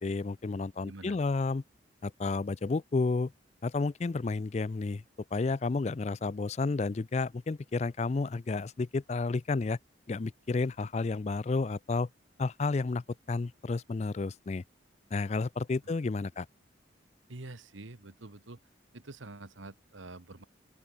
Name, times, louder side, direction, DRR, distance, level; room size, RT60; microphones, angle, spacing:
voice 1, 0.0-1.6 2.0-3.3 3.6-5.0 5.3-9.8 10.1-12.1 12.4-14.6 15.1-16.5, left 3 dB, 35° left, 0.4 m, -31 dB
voice 2, 0.8-1.2 17.3-18.6 18.9-20.4, right 2 dB, 90° right, 1.4 m, -46 dB
open air
head